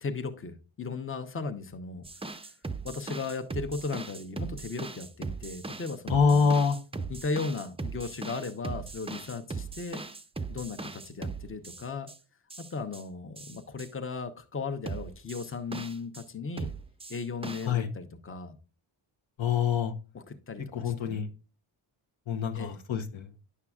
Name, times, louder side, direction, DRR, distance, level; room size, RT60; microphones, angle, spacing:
voice 1, 0.0-2.0 2.8-6.5 7.1-10.0 10.5-12.1 12.7-16.7 17.1-18.5 20.1-21.2 22.5-22.8, left 4 dB, 25° left, 0.9 m, -36 dB
sound 1, 2.0-12.2 12.5-13.0 13.4-13.9 14.9-16.2 16.6-17.7, right 3 dB, 10° right, 0.4 m, -39 dB
voice 2, 6.1-6.8 17.6-17.9 19.4-19.9 20.7-21.3 22.3-23.3, left 6 dB, 70° left, 1.0 m, -25 dB
9.9 x 5.7 x 2.4 m
cardioid pair, 75°, 49 cm